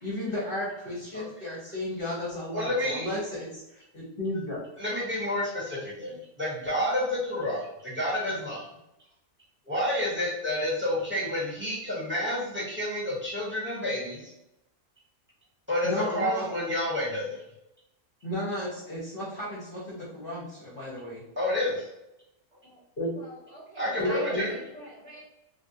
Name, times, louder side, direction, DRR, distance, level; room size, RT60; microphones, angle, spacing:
voice 1, 0.0-4.6 15.8-16.6 18.2-21.2 23.0-23.1 23.9-24.5, left 1 dB, 45° left, -6 dB, 0.9 m, -33 dB
voice 2, 2.5-3.1 4.8-8.6 9.7-14.3 15.7-17.4 21.4-21.8 23.7-24.5, left 1 dB, 10° right, -6 dB, 1.0 m, -29 dB
voice 3, 23.1-25.2, equal, 50° right, -5 dB, 1.0 m, -43 dB
3.3 x 2.3 x 2.7 m, 0.88 s
omnidirectional pair, 1.6 m